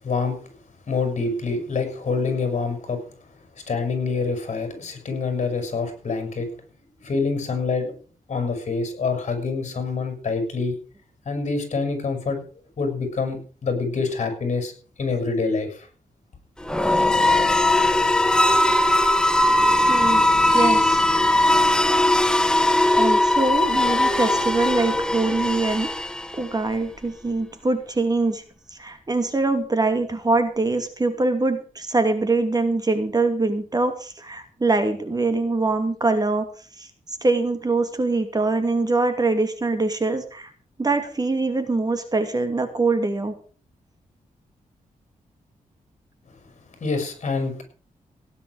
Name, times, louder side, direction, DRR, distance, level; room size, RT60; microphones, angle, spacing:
voice 1, 0.0-0.4 0.9-3.0 3.7-6.5 7.0-7.9 8.3-10.8 11.2-12.4 12.8-14.7 15.0-15.9 46.8-47.6, left 4 dB, 55° left, 7 dB, 6.9 m, -26 dB
sound 1, 16.6-26.5, left 1 dB, 5° left, 1.3 m, -19 dB
voice 2, 19.9-21.0 22.9-25.9 26.4-28.4 28.7-36.5 36.8-40.5 40.8-43.3, right 3 dB, 25° right, 8 dB, 2.6 m, -23 dB
17.5 x 10.0 x 4.9 m, 0.40 s
wide cardioid pair, 105°, 14 cm